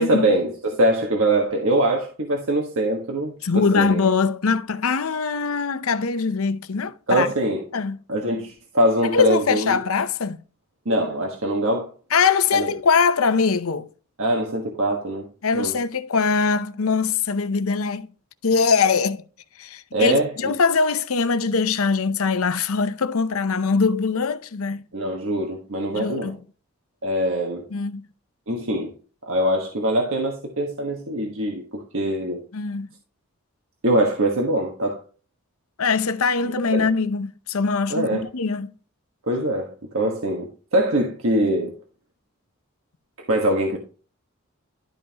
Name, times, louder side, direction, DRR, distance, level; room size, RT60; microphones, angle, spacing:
voice 1, 0.0-4.0 7.1-7.6 8.1-9.8 10.8-11.9 12.5-12.7 14.2-15.3 15.5-15.8 19.9-20.5 24.9-26.3 27.0-27.6 28.5-28.9 29.3-32.4 33.8-35.0 36.7-36.9 37.9-38.3 39.3-41.7 43.3-43.8, right 1 dB, 70° right, 1.5 m, -23 dB
voice 2, 3.4-7.3 7.7-8.0 9.1-10.4 12.1-13.9 15.4-18.1 18.4-19.2 19.6-24.8 25.9-26.4 27.7-28.1 32.5-32.9 35.8-38.7, left 5 dB, 80° left, 0.7 m, -22 dB
12.0 x 5.4 x 2.9 m
head